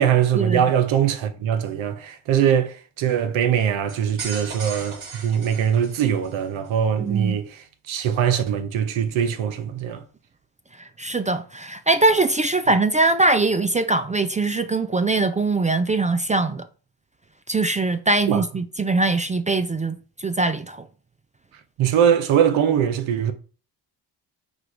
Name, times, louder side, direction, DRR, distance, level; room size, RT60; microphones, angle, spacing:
voice 1, 0.0-10.0 18.3-18.4 21.8-23.3, right 9 dB, 70° right, 0.9 m, -22 dB
sound 1, 3.9-6.4, right 4 dB, 50° right, 2.7 m, -37 dB
voice 2, 7.0-7.4 10.8-16.6 17.5-20.8, right 3 dB, 15° right, 0.3 m, -22 dB
5.0 x 2.3 x 4.5 m
hypercardioid pair, 45°, 49 cm